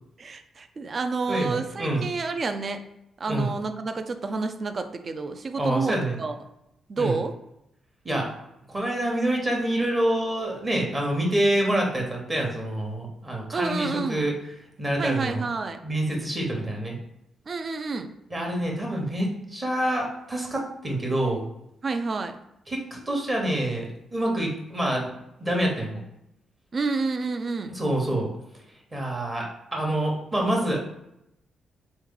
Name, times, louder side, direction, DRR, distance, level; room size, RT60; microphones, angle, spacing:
voice 1, 0.2-2.8 3.2-6.4 6.9-7.3 13.5-14.2 15.0-15.8 17.5-18.1 21.8-22.4 26.7-27.7, right 4 dB, 35° right, 8 dB, 0.4 m, -29 dB
voice 2, 1.3-2.1 3.3-3.5 5.6-6.2 7.0-7.2 8.0-8.3 8.7-14.3 14.8-15.5 15.8-17.0 18.3-21.4 22.7-25.1 25.4-26.0 27.7-28.3 28.9-30.8, right 1 dB, 20° right, -1 dB, 1.0 m, -27 dB
3.5 x 3.1 x 3.7 m, 0.83 s
cardioid pair, 150°, 0 cm